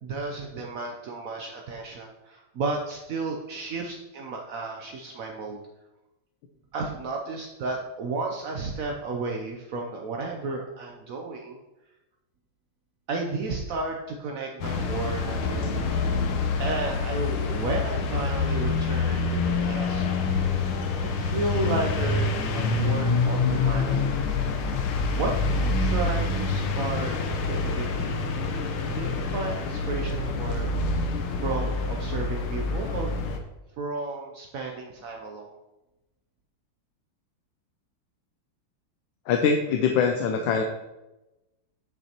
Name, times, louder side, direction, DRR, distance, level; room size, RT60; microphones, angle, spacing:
voice 1, 0.0-5.6 6.7-11.6 13.1-15.9 16.6-20.0 21.0-24.0 25.1-27.1 27.4-28.2 28.9-30.7 31.3-33.1 33.8-35.6, right 3 dB, 75° right, 1 dB, 0.7 m, -33 dB
sound 1, 14.6-33.4, left 4 dB, 90° left, 1.7 m, -26 dB
voice 2, 39.3-40.6, left 6 dB, 75° left, 3 dB, 1.3 m, -23 dB
8.3 x 6.7 x 2.9 m, 0.99 s
omnidirectional pair, 2.3 m